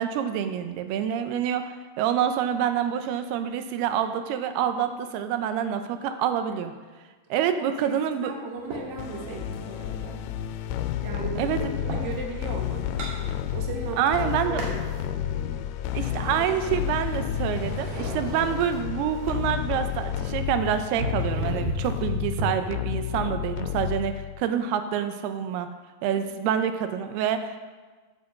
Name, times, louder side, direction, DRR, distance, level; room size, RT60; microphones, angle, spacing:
voice 1, 0.0-6.7 7.3-8.3 11.4-11.6 14.0-14.6 15.9-25.7 26.0-27.6, right 9 dB, 85° right, 8 dB, 2.7 m, -27 dB
voice 2, 8.2-10.2 11.0-11.6 11.8-15.6, right 3 dB, 50° right, 0 dB, 1.3 m, -37 dB
sound 1, 8.7-9.6 10.1-12.2 12.6-13.8 14.1-15.0 15.5-17.2 17.5-22.5, right 1 dB, 65° right, 3.7 m, -35 dB
sound 2, 9.0-24.4, left 11 dB, 85° left, 2.5 m, -31 dB
8.6 x 7.3 x 7.3 m, 1.3 s
omnidirectional pair, 4.5 m